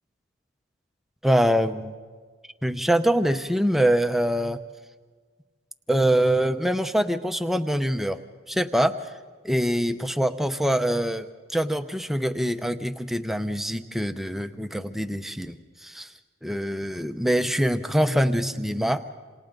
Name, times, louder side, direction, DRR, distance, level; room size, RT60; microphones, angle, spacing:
voice 1, 1.2-1.9 2.6-4.6 5.9-8.2 8.5-9.0 9.4-16.1 16.4-19.0, equal, ahead, 8 dB, 0.7 m, -24 dB
27.5 x 27.5 x 3.9 m, 1.5 s
head